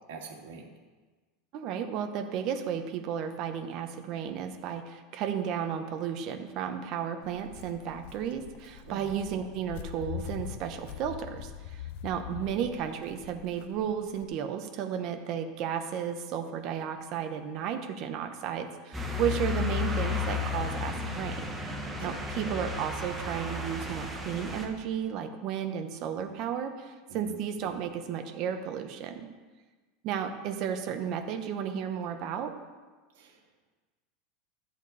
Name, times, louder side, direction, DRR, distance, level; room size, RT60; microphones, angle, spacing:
voice 1, 0.1-0.7 8.8-9.1 12.6-12.7 22.0-22.2 27.1-27.4 33.1-33.4, right 3 dB, 85° right, 0 dB, 2.0 m, -44 dB
voice 2, 1.5-21.5 22.0-29.3 30.0-32.5, right 8 dB, 40° right, 6 dB, 0.9 m, -33 dB
Walk footsteps, 7.2-14.2, left 9 dB, 60° left, 0.6 m, -43 dB
sound 1, 18.9-24.7, left 4 dB, 5° right, 1.0 m, -33 dB
12.5 x 8.0 x 4.1 m, 1.3 s
supercardioid pair, 170°, 0 cm